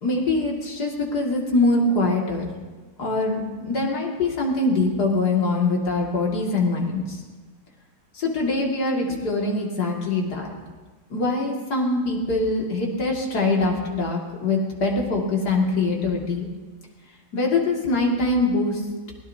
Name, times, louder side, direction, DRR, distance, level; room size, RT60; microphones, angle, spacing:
voice 1, 0.0-2.5 3.0-7.2 8.2-10.5 11.1-16.5 17.3-18.8, left 2 dB, 65° left, -1 dB, 2.8 m, -23 dB
23.5 x 17.0 x 2.8 m, 1.3 s
omnidirectional pair, 1.8 m